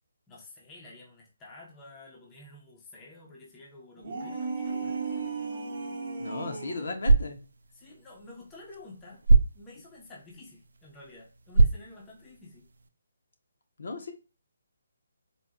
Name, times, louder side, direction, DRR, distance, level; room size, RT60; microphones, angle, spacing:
voice 1, 0.3-5.0 6.8-6.9 7.7-9.2 9.5-12.6, left 2 dB, 10° left, -3 dB, 0.5 m, -50 dB
sound 1, 4.0-6.9, right 4 dB, 35° right, 0.7 m, -35 dB
voice 2, 6.2-7.4 13.8-14.1, left 3 dB, 60° left, 6 dB, 0.6 m, -35 dB
sound 2, 6.9-12.9, right 3 dB, 75° right, 0.3 m, -27 dB
3.9 x 2.1 x 2.2 m, 0.34 s
hypercardioid pair, 175°, 0 cm